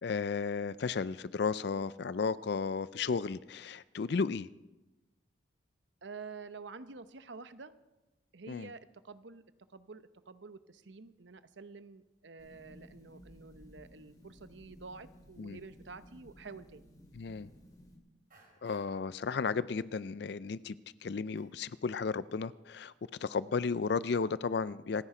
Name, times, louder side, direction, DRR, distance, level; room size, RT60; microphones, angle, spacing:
voice 1, 0.0-4.5 8.5-8.7 15.4-15.6 17.1-17.5 18.6-20.8 21.0-22.9 23.2-25.1, left 5 dB, 55° left, 17 dB, 0.4 m, -34 dB
voice 2, 6.0-7.7 8.3-9.4 9.7-16.9, right 4 dB, 70° right, 13 dB, 0.8 m, -49 dB
sound 1, 12.4-18.0, equal, 20° left, 2.3 m, -57 dB
sound 2, 16.7-16.8 17.3-17.8 18.3-19.2 19.6-20.0 20.3-20.4 20.8-22.2 22.5-22.8, right 3 dB, 45° right, 3.9 m, -65 dB
27.0 x 10.0 x 4.9 m, 1.0 s
head